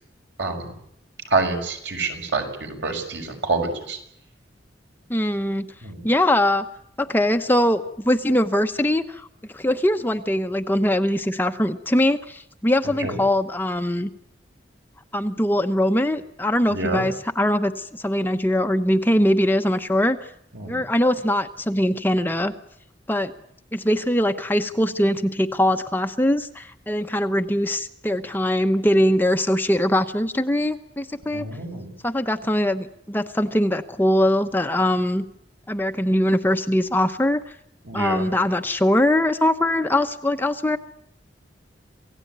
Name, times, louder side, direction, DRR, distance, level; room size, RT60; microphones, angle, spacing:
voice 1, 0.4-0.7 1.3-4.0 5.8-6.0 13.0-13.2 16.7-17.0 20.5-20.8 31.3-31.9 37.8-38.3, right 3 dB, 75° right, 4 dB, 6.1 m, -27 dB
voice 2, 5.1-5.7 6.0-6.7 7.0-9.3 9.5-14.1 15.1-20.3 20.7-22.5 23.1-23.3 23.7-31.5 32.0-35.2 35.7-37.4 37.9-40.8, left 1 dB, 10° left, 7 dB, 0.9 m, -22 dB
28.0 x 17.0 x 9.4 m, 0.74 s
head